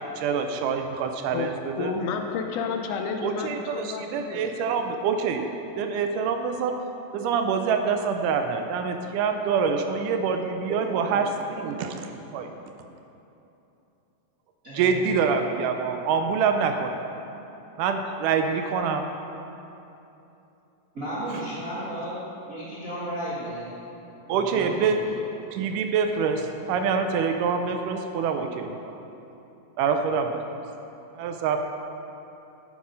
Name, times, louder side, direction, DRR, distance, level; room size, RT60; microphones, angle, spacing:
voice 1, 0.0-1.9 3.2-5.5 5.8-6.8 7.1-11.9 12.3-12.5 14.7-17.0 17.8-19.1 21.3-21.4 24.3-25.1 25.5-28.8 29.8-30.4 31.2-31.7, right 5 dB, 80° right, 6 dB, 2.0 m, -26 dB
voice 2, 1.8-4.5, left 5 dB, 80° left, 4 dB, 2.0 m, -30 dB
voice 3, 10.7-11.2 14.6-15.1 20.9-22.1 22.5-23.7 24.2-25.2, right 1 dB, 55° right, -10 dB, 0.9 m, -34 dB
9.4 x 6.3 x 5.4 m, 2.9 s
omnidirectional pair, 3.8 m